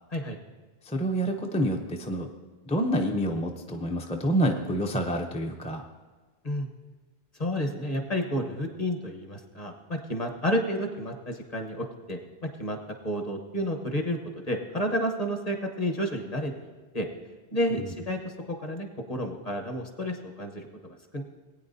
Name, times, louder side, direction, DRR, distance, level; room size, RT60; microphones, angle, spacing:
voice 1, 0.9-2.3 2.7-5.8, right 1 dB, 10° left, 2 dB, 0.4 m, -27 dB
voice 2, 7.4-12.8 13.0-17.1 17.5-20.7 21.1-21.2, equal, 40° left, 4 dB, 1.1 m, -31 dB
20.0 x 9.0 x 2.7 m, 1.3 s
omnidirectional pair, 1.1 m